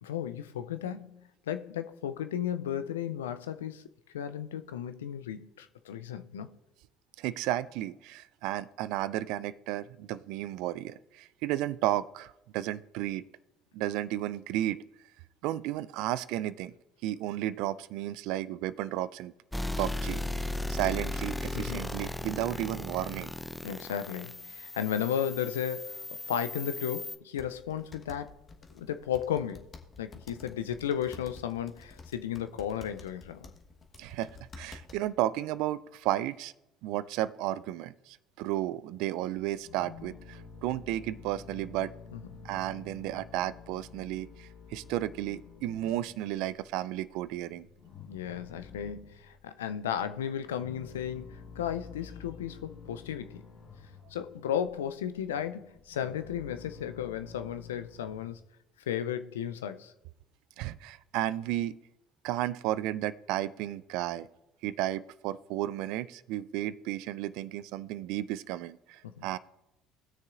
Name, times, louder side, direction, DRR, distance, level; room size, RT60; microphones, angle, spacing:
voice 1, 0.0-3.9 4.1-6.6 21.5-21.9 23.6-28.4 28.7-29.7 30.0-33.5 42.1-42.2 48.1-53.4 54.1-58.4 58.9-59.9 69.0-69.3, left 9 dB, 85° left, 0.4 m, -34 dB
voice 2, 7.2-13.2 13.7-14.8 15.4-16.7 17.0-19.3 19.8-20.2 20.7-23.3 34.0-34.3 34.6-36.5 36.8-41.9 42.4-47.7 60.6-61.8 62.2-64.3 64.6-69.4, right 14 dB, 70° right, 0.3 m, -33 dB
sound 1, 19.5-27.2, left 1 dB, 5° left, 0.6 m, -36 dB
sound 2, 27.4-35.1, left 4 dB, 35° left, 1.2 m, -51 dB
sound 3, 39.4-46.7 47.0-47.1 47.5-49.4 49.9-58.4, left 5 dB, 60° left, 1.2 m, -49 dB
19.5 x 6.5 x 2.5 m
hypercardioid pair, 60°, 0 cm